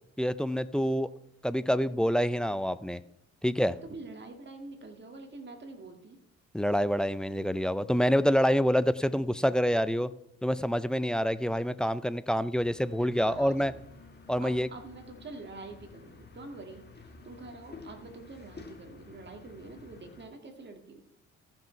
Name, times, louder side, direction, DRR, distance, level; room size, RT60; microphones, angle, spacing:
voice 1, 0.2-1.1 1.4-3.0 3.4-3.7 6.5-10.1 10.4-13.7 14.3-14.7, equal, 5° left, 15 dB, 0.4 m, -27 dB
voice 2, 3.6-6.2 13.0-13.8 14.4-21.0, right 3 dB, 35° right, 4 dB, 2.0 m, -46 dB
sound 1, 12.6-20.3, left 4 dB, 35° left, 1.5 m, -51 dB
14.0 x 6.1 x 4.5 m, 0.80 s
cardioid pair, 90°, 30 cm